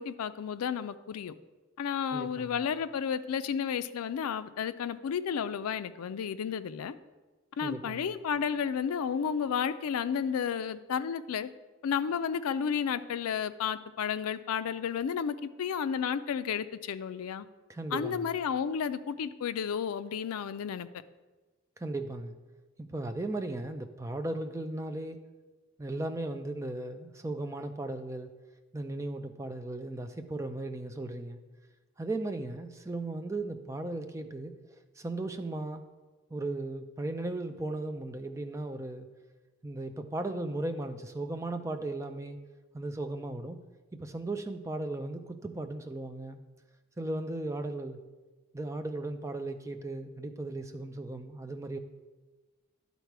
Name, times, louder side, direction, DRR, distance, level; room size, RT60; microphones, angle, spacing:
voice 1, 0.0-1.3 1.8-7.0 7.6-11.5 11.8-17.5 17.9-20.9, left 7 dB, 90° left, 13 dB, 0.4 m, -32 dB
voice 2, 2.1-2.6 7.6-8.1 17.7-18.3 21.8-22.3 22.9-25.2 25.8-28.3 28.7-31.4 32.0-34.5 35.0-35.8 36.3-39.1 39.6-42.4 42.7-43.6 44.0-46.4 47.0-48.0 48.5-51.8, right 2 dB, 15° right, 7 dB, 0.4 m, -36 dB
10.5 x 4.0 x 4.6 m, 1.2 s
head